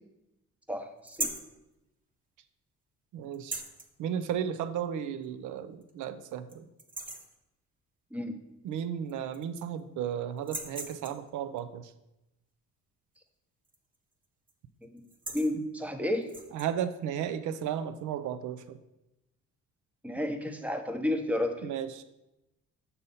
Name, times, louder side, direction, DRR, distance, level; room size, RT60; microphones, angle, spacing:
voice 1, 0.7-1.3 8.1-8.4 14.8-15.0 15.3-16.3 20.0-21.7, left 1 dB, 5° right, 6 dB, 0.8 m, -31 dB
sound 1, 1.1-1.5 3.3-3.9 5.2-5.3 5.8-5.9 6.3-6.5 6.8-7.3 8.7-8.8 9.1-9.8 10.4-11.3 13.6-14.0 14.2-14.5 15.0-15.5 16.2-16.7, right 2 dB, 25° right, 1.0 m, -38 dB
voice 2, 3.1-3.6 4.0-6.7 8.6-11.9 16.5-18.8 21.6-22.0, right 9 dB, 80° right, 12 dB, 0.5 m, -34 dB
6.5 x 4.2 x 5.6 m, 0.93 s
cardioid pair, 90°, 30 cm